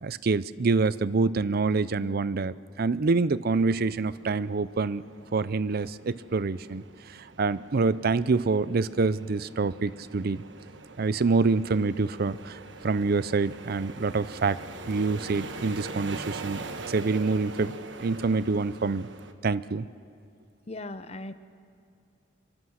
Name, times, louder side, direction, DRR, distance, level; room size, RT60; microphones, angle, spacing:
voice 1, 0.0-5.0 5.3-10.4 11.0-14.6 14.9-17.7 18.0-19.1 19.4-19.9, right 4 dB, 55° right, 17 dB, 0.5 m, -26 dB
sound 1, 3.5-19.3, right 3 dB, 75° right, 1.3 m, -43 dB
voice 2, 20.7-21.3, left 2 dB, 35° left, 12 dB, 0.9 m, -38 dB
25.0 x 23.0 x 6.4 m, 2.4 s
head